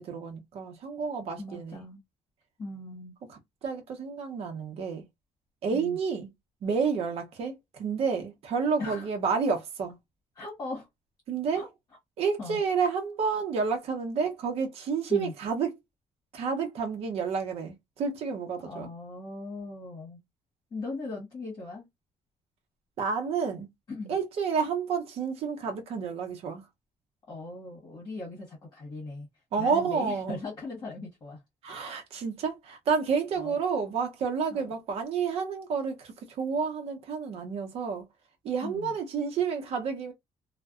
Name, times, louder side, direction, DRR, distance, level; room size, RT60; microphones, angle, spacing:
voice 1, 0.0-1.8 3.3-5.0 5.6-6.3 6.6-10.0 11.3-11.6 12.2-15.8 16.3-18.9 23.0-23.7 24.1-26.6 29.5-30.4 31.6-38.1 38.4-40.1, right 5 dB, 55° right, 0.7 m, -30 dB
voice 2, 1.4-2.0 2.6-3.1 5.7-6.0 8.8-9.1 10.3-10.9 11.5-11.7 12.4-12.6 15.1-15.3 18.7-20.2 20.7-21.9 23.9-24.1 27.3-29.3 29.6-31.4 33.4-33.6 34.5-34.7 38.6-38.9, left 2 dB, 30° left, 1.1 m, -39 dB
2.5 x 2.1 x 2.3 m
cardioid pair, 160°, 12 cm